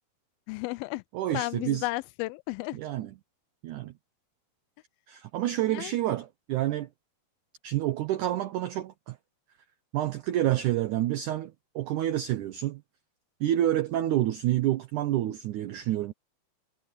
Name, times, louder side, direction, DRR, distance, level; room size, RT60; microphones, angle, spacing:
voice 1, 0.5-1.0 1.3-2.8 5.7-5.9, left 21 dB, 80° left, 2.3 m, -33 dB
voice 2, 1.1-1.9 2.7-3.1 3.6-3.9 5.1-6.9 7.6-9.2 9.9-12.8 13.4-16.1, right 13 dB, 80° right, 1.8 m, -28 dB
omnidirectional pair, 4.6 m